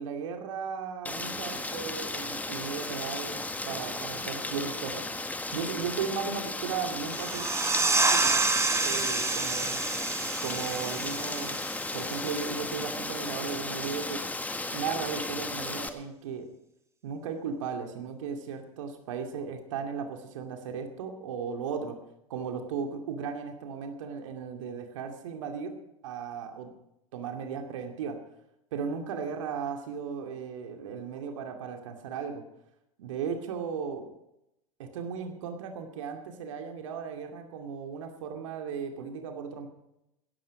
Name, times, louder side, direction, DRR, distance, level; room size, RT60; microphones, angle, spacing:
voice 1, 0.0-5.1 5.5-7.5 8.0-8.5 8.8-9.8 10.4-11.6 11.9-14.3 14.7-16.5 17.0-22.0 22.3-26.7 27.1-28.2 28.7-32.4 33.0-34.1 34.8-39.7, right 6 dB, 65° right, 4 dB, 2.4 m, -36 dB
Rain, 1.0-15.9, left 2 dB, 10° left, 1.6 m, -35 dB
sound 1, 7.1-12.4, right 3 dB, 15° right, 2.7 m, -28 dB
17.0 x 14.0 x 5.1 m, 0.84 s
figure-of-eight pair, 85°, 17 cm